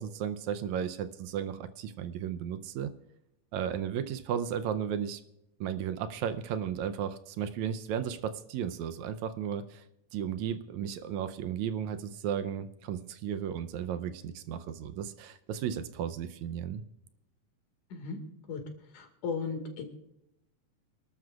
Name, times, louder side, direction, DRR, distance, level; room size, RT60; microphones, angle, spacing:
voice 1, 0.0-2.9 3.5-5.2 5.6-9.8 10.1-16.8, right 8 dB, 80° right, 10 dB, 2.0 m, -34 dB
voice 2, 18.9-19.8, left 5 dB, 80° left, 5 dB, 3.5 m, -35 dB
28.5 x 12.5 x 2.4 m, 0.84 s
omnidirectional pair, 3.4 m